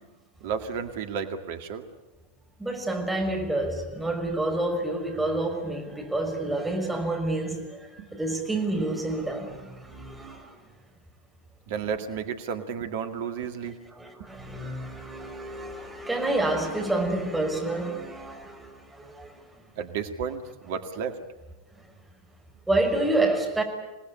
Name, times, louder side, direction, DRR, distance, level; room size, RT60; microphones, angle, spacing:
voice 1, 0.4-1.8 8.0-8.1 11.7-13.8 19.8-21.2, right 6 dB, 50° right, 2.1 m, -32 dB
voice 2, 2.6-10.5 14.0-19.4 22.7-23.6, right 2 dB, 5° right, 5.8 m, -28 dB
27.5 x 19.0 x 9.8 m
figure-of-eight pair, 90°, 0 cm